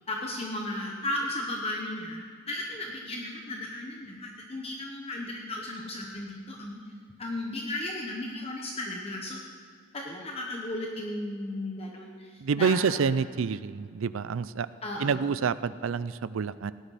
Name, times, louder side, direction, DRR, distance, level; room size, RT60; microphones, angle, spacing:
voice 1, 0.1-6.8 7.2-9.4 9.9-13.2 14.8-15.2, left 1 dB, 30° left, 0 dB, 1.1 m, -35 dB
voice 2, 12.4-14.7 15.0-16.7, right 6 dB, 70° right, 16 dB, 0.4 m, -28 dB
17.0 x 11.5 x 4.2 m, 2.2 s
head